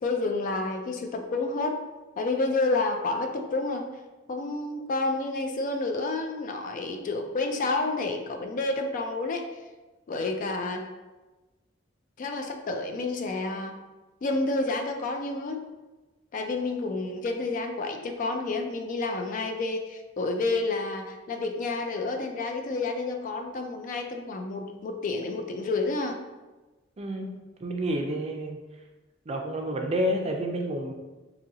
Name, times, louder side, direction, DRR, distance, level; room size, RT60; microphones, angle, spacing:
voice 1, 0.0-1.8 2.2-3.9 4.3-9.5 10.1-10.9 12.2-13.8 14.2-15.6 16.3-26.2 27.2-27.4, left 3 dB, 45° left, 4 dB, 0.3 m, -29 dB
voice 2, 27.0-27.3 27.6-28.6 29.3-30.9, equal, 30° right, 3 dB, 0.4 m, -29 dB
4.0 x 2.7 x 2.7 m, 1.2 s
head